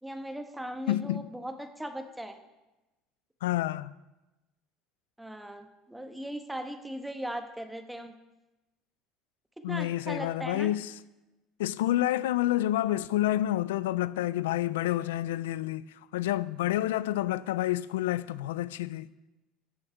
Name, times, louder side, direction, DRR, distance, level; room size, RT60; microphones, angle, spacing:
voice 1, 0.0-2.3 5.2-8.1 9.7-10.7, right 1 dB, 5° right, 1.3 m, -38 dB
voice 2, 0.9-1.3 3.4-3.9 9.6-10.9 11.6-15.9 16.1-19.1, left 14 dB, 90° left, 0.3 m, -29 dB
16.5 x 6.3 x 4.6 m
supercardioid pair, 95°, 0 cm